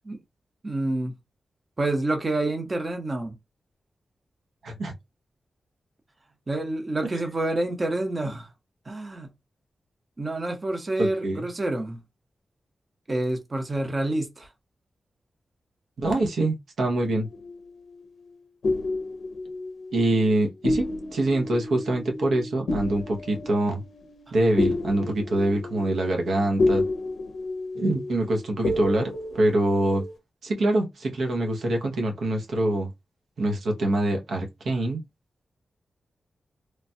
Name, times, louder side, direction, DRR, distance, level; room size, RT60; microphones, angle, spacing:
voice 1, 0.6-1.1 1.8-3.3 6.5-8.5 8.9-9.3 10.2-12.0 13.1-14.5, right 2 dB, 30° right, 0.7 m, -28 dB
voice 2, 11.0-11.5 16.0-17.3 19.9-23.8 24.3-26.8 27.7-30.0 30.4-32.9 33.4-35.0, right 1 dB, 80° right, 0.6 m, -25 dB
sound 1, 17.0-18.0 18.6-20.3 20.6-30.2, left 2 dB, 80° left, 0.5 m, -30 dB
3.1 x 2.2 x 2.6 m
wide cardioid pair, 135°, 0 cm